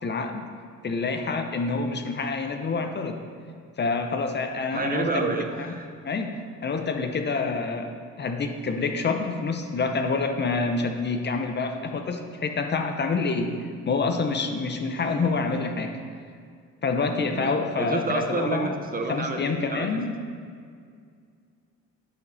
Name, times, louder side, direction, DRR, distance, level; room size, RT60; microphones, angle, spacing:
voice 1, 0.0-0.5 0.8-3.2 3.8-5.3 5.6-5.7 6.0-7.9 8.2-13.5 13.9-16.0 16.8-18.8 19.1-20.1, left 4 dB, 35° left, 5 dB, 0.6 m, -27 dB
voice 2, 4.7-5.9 17.3-20.0, right 3 dB, 30° right, 5 dB, 0.6 m, -29 dB
8.4 x 5.2 x 4.0 m, 2.2 s
cardioid pair, 90°, 30 cm